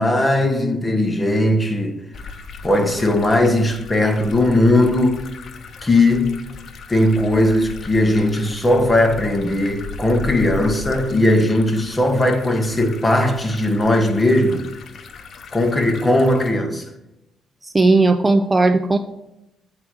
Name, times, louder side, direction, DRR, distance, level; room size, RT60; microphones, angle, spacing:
voice 1, 0.0-2.0 2.6-5.2 5.8-6.3 6.9-14.6 15.5-16.8, left 1 dB, 15° left, 1.4 m, -18 dB
sound 1, 2.1-16.5, left 5 dB, 55° left, 0.9 m, -37 dB
voice 2, 17.6-19.0, right 3 dB, 20° right, 0.5 m, -16 dB
8.4 x 4.8 x 6.2 m
cardioid pair, 90°, 0 cm